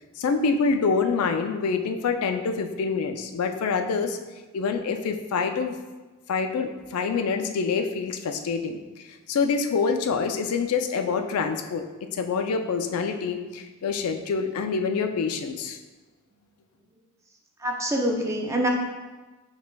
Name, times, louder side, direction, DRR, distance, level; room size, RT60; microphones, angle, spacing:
voice 1, 0.2-4.2 4.5-5.8 6.3-8.8 9.3-15.8, left 5 dB, 85° left, 7 dB, 0.4 m, -26 dB
voice 2, 17.6-18.7, right 1 dB, 15° right, 1 dB, 0.4 m, -25 dB
5.8 x 3.2 x 2.2 m, 1.2 s
head